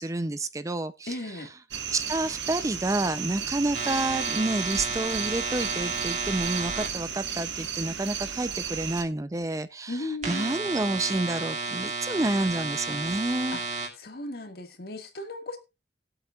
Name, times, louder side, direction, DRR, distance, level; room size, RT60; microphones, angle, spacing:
voice 1, 0.0-1.2 1.9-13.6, right 2 dB, 20° right, 0.5 m, -29 dB
voice 2, 1.1-1.5 9.9-10.6 13.5-13.6 14.0-15.6, left 2 dB, 60° left, 1.9 m, -36 dB
sound 1, 1.7-9.0, right 7 dB, 85° right, 1.3 m, -34 dB
sound 2, 3.7-6.9 10.2-13.9, right 4 dB, 40° right, 2.3 m, -32 dB
19.5 x 8.0 x 2.4 m
head